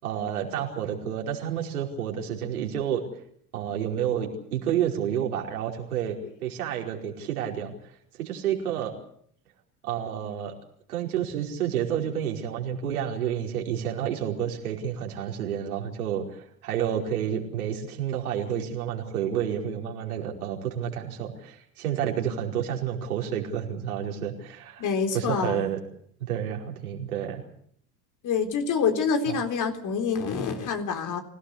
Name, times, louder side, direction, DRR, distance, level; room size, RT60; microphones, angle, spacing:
voice 1, 0.0-3.0 3.5-7.7 8.2-8.9 9.8-10.5 10.9-24.9 25.1-25.8 26.2-27.4 29.2-29.4, right 9 dB, 70° right, 1 dB, 5.1 m, -30 dB
voice 2, 24.8-25.7 28.2-31.2, left 6 dB, 40° left, 5 dB, 3.9 m, -26 dB
25.5 x 17.5 x 8.2 m, 0.65 s
figure-of-eight pair, 70°, 45 cm